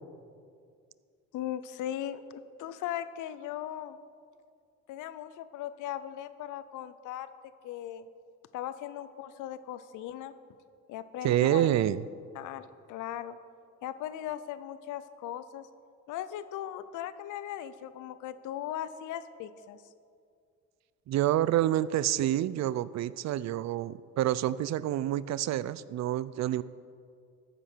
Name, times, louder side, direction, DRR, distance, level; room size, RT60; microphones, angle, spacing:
voice 1, 1.3-4.0 4.9-7.3 7.6-8.1 8.5-10.3 10.9-11.7 12.3-13.4 13.8-15.7 16.1-19.8, left 11 dB, 85° left, 14 dB, 0.6 m, -38 dB
voice 2, 11.2-12.1 21.1-26.6, right 13 dB, 65° right, 18 dB, 0.4 m, -28 dB
13.5 x 9.0 x 4.5 m, 2.3 s
cardioid pair, 90°, 30 cm